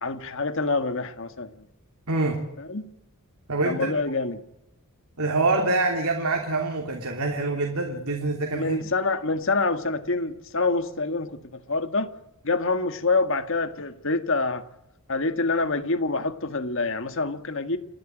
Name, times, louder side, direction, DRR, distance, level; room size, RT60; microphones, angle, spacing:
voice 1, 0.0-1.7 2.6-2.9 3.6-4.4 8.5-12.1 12.4-14.6 15.1-17.8, left 3 dB, 60° left, 1.7 m, -26 dB
voice 2, 2.1-2.4 3.5-3.9 5.2-8.8, right 2 dB, 80° right, 3.1 m, -25 dB
29.5 x 11.5 x 9.1 m
head